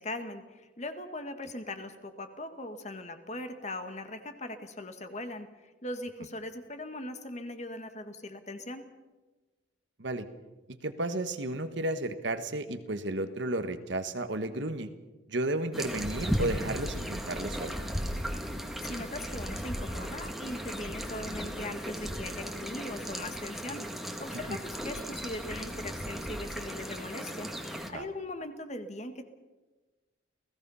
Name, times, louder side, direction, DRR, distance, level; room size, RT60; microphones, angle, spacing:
voice 1, 0.0-5.5 5.8-8.9 18.8-29.2, left 1 dB, 35° left, 8 dB, 1.7 m, -40 dB
voice 2, 10.7-14.9 15.3-17.7 24.5-24.6 27.9-28.1, right 1 dB, 65° right, 9 dB, 1.4 m, -33 dB
sound 1, 15.7-27.9, equal, ahead, 1.7 m, -36 dB
29.5 x 17.0 x 5.7 m, 1.2 s
head